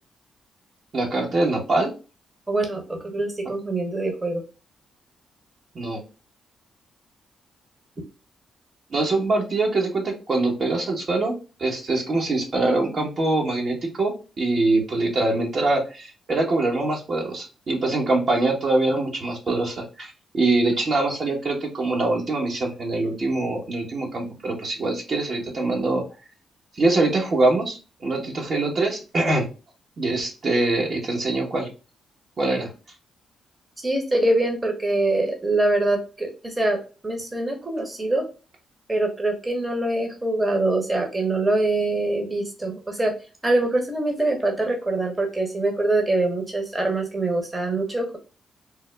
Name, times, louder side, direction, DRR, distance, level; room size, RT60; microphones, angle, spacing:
voice 1, 0.9-1.9 5.7-6.0 8.9-26.0 26.8-29.5 30.0-31.7 32.4-32.7, right 2 dB, 55° right, 0 dB, 1.2 m, -23 dB
voice 2, 2.5-4.4 33.8-38.2 38.9-43.1 43.4-48.2, right 2 dB, 25° right, 2 dB, 1.0 m, -24 dB
3.5 x 2.1 x 3.3 m, 0.32 s
supercardioid pair, 60°, 0 cm